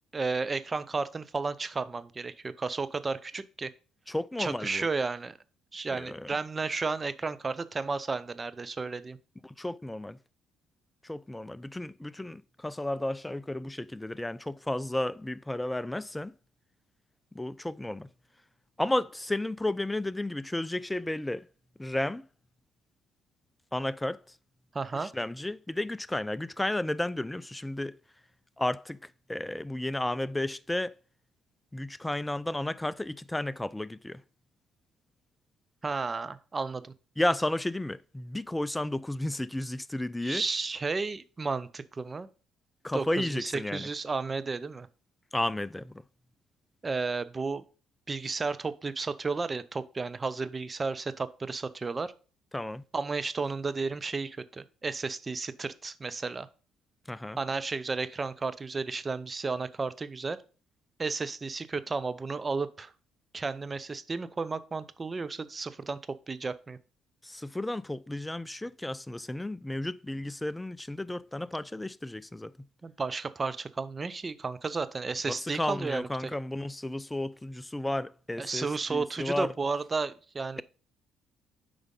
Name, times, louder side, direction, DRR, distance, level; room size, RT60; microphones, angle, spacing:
voice 1, 0.1-3.7 4.4-5.4 5.7-9.2 24.7-25.1 35.8-36.9 40.2-42.3 42.9-44.9 46.8-47.6 48.1-52.1 52.9-56.5 57.4-60.4 61.0-62.9 63.3-66.0 66.3-66.8 72.8-76.3 78.4-80.6, right 4 dB, 30° right, 0.6 m, -33 dB
voice 2, 4.1-4.9 5.9-6.3 9.4-10.2 11.0-16.3 17.3-18.1 18.8-21.5 21.8-22.2 23.7-24.2 24.9-28.0 28.6-30.9 31.7-34.2 37.2-40.4 42.8-43.9 45.3-46.0 52.5-52.8 57.1-57.4 67.2-72.5 75.3-79.5 80.6-80.7, left 1 dB, 10° left, 0.4 m, -33 dB
7.9 x 5.1 x 3.7 m
hypercardioid pair, 50°, 0 cm